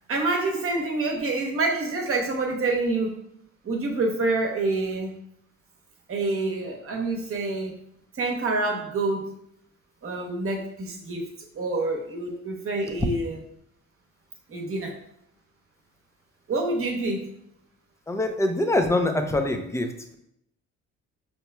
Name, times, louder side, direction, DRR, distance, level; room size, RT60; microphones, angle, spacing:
voice 1, 0.1-3.2 3.6-5.2 6.1-7.8 8.1-9.3 10.0-13.4 14.5-14.9 16.5-17.3, right 2 dB, 45° right, 1 dB, 1.0 m, -27 dB
voice 2, 18.1-20.2, left 1 dB, 10° left, 5 dB, 0.5 m, -24 dB
5.3 x 3.0 x 2.2 m, 0.76 s
cardioid pair, 90°, 30 cm